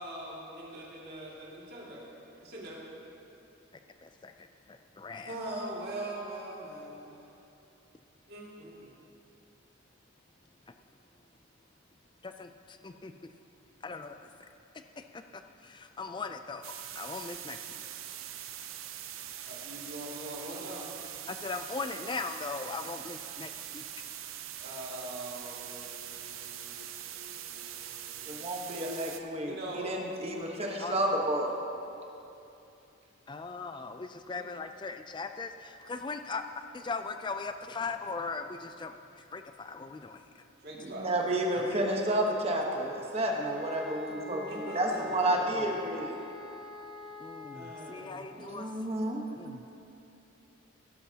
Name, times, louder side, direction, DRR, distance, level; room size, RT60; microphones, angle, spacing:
voice 1, 0.0-2.1 2.4-2.8 5.2-7.3 8.3-8.9 19.4-20.9 24.6-28.3 29.4-29.9 34.3-34.4 40.6-41.2 44.5-45.5 47.5-48.3, right 1 dB, 50° right, -4 dB, 2.3 m, -42 dB
voice 2, 3.7-5.3 12.2-13.3 13.8-14.3 15.0-17.8 21.3-23.8 30.8-31.2 33.3-36.4 36.7-40.2 41.7-41.8 45.3-45.5 47.2-48.7 49.3-49.5, left 4 dB, 20° left, 8 dB, 0.3 m, -39 dB
sound 1, 16.6-29.2, right 11 dB, 75° right, 0.6 m, -43 dB
voice 3, 28.3-31.5 40.8-46.1 48.4-49.4, right 1 dB, 30° right, 0 dB, 1.2 m, -31 dB
sound 2, 43.5-48.2, left 4 dB, ahead, 0.9 m, -44 dB
16.5 x 11.5 x 2.9 m, 2.8 s
head